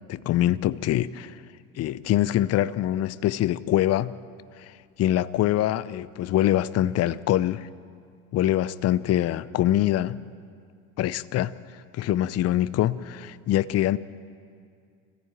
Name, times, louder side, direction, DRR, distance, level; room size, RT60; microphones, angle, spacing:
voice 1, 0.1-1.4 1.8-4.1 4.6-4.7 5.0-7.7 8.3-10.2 11.0-11.5 11.9-14.0, left 13 dB, 40° left, 0.7 m, -24 dB
24.5 x 15.5 x 9.0 m
hypercardioid pair, 75°, 41 cm